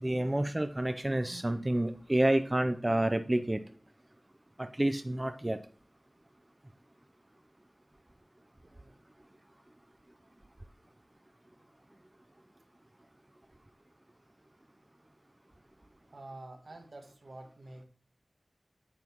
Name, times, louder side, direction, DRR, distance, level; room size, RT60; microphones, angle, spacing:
voice 1, 0.0-3.6 4.6-5.6, right 1 dB, 25° right, 8 dB, 0.5 m, -29 dB
voice 2, 8.6-8.9 16.1-17.8, right 2 dB, 70° right, 4 dB, 1.5 m, -48 dB
9.0 x 6.0 x 3.0 m, 0.43 s
wide cardioid pair, 50°, 0 cm